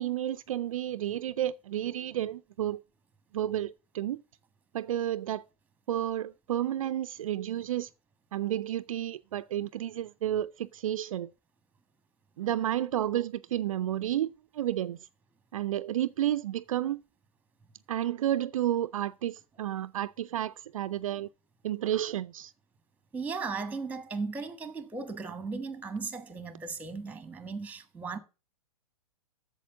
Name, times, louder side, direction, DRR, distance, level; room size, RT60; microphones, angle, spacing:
voice 1, 0.0-2.8 3.3-4.2 4.7-5.4 5.9-7.9 8.3-11.3 12.4-15.0 15.5-17.0 17.9-21.3 21.6-22.5, right 12 dB, 65° right, 0.4 m, -31 dB
voice 2, 23.1-28.2, right 4 dB, 10° right, 1.4 m, -36 dB
8.4 x 7.1 x 6.9 m
hypercardioid pair, 115°, 19 cm